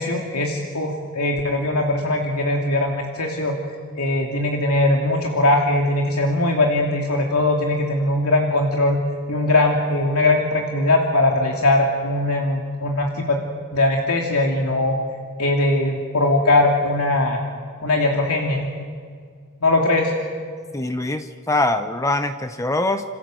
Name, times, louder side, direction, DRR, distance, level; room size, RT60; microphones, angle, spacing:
voice 1, 0.0-3.6 3.9-9.0 9.3-13.4 13.7-15.0 15.4-17.4 17.8-18.7 19.6-20.1, left 2 dB, 80° left, 0 dB, 2.8 m, -20 dB
voice 2, 20.7-23.0, left 2 dB, 15° left, 9 dB, 0.8 m, -23 dB
28.5 x 26.5 x 7.8 m, 2.1 s
head